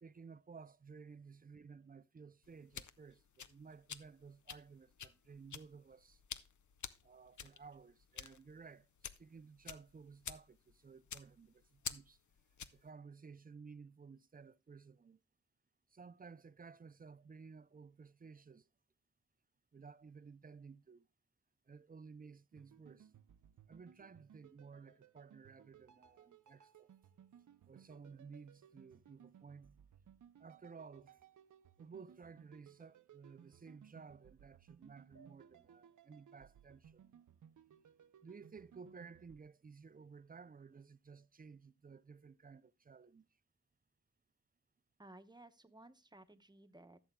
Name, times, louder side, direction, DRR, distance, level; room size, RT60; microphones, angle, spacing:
voice 1, 0.0-6.2 7.0-8.9 9.2-12.2 12.7-15.2 15.9-18.6 19.7-21.0 21.7-23.1 23.7-26.9 27.7-29.8 30.4-31.2 31.8-37.1 38.2-43.3, right 5 dB, 30° right, 0.4 m, -56 dB
sound 1, 2.4-12.9, left 8 dB, 75° left, 0.6 m, -50 dB
sound 2, 22.5-39.4, right 9 dB, 80° right, 0.5 m, -63 dB
sound 3, 35.1-38.1, right 4 dB, 55° left, 1.0 m, -71 dB
voice 2, 45.0-47.0, right 2 dB, 15° right, 0.8 m, -58 dB
15.0 x 7.1 x 2.2 m
wide cardioid pair, 70°, 30 cm